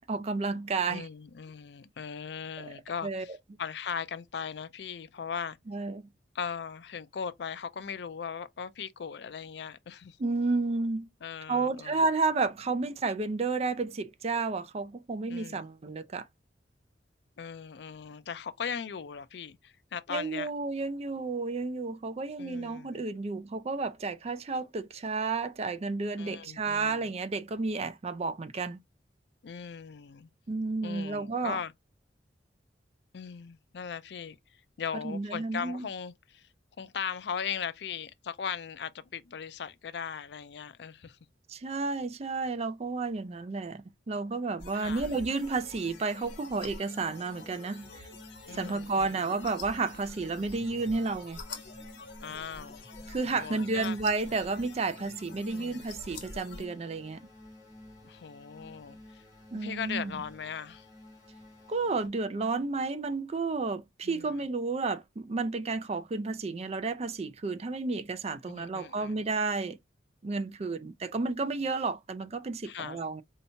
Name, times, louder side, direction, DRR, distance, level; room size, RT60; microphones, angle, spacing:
voice 1, 0.1-1.1 2.6-2.7 3.0-3.2 5.7-6.1 10.2-11.1 11.5-16.3 20.1-28.8 30.5-31.6 35.0-35.9 41.5-48.1 48.6-51.4 53.1-57.2 59.5-60.1 61.7-69.8 70.2-73.2, right 3 dB, 35° right, 0.4 m, -31 dB
voice 2, 0.9-5.6 6.3-10.2 11.2-12.0 15.3-15.6 17.4-20.5 22.4-23.0 26.2-27.1 29.4-30.3 30.8-31.7 33.1-36.5 36.8-41.2 44.7-45.2 48.5-49.3 52.2-52.9 53.4-54.0 55.5-56.0 58.0-59.2 59.5-60.9 64.0-64.4 68.5-69.3 72.6-73.0, left 7 dB, 70° left, 0.4 m, -39 dB
sound 1, 44.6-56.7, left 3 dB, 90° left, 1.1 m, -47 dB
sound 2, 45.0-62.1, left 1 dB, 20° right, 2.6 m, -52 dB
4.4 x 2.8 x 2.8 m
head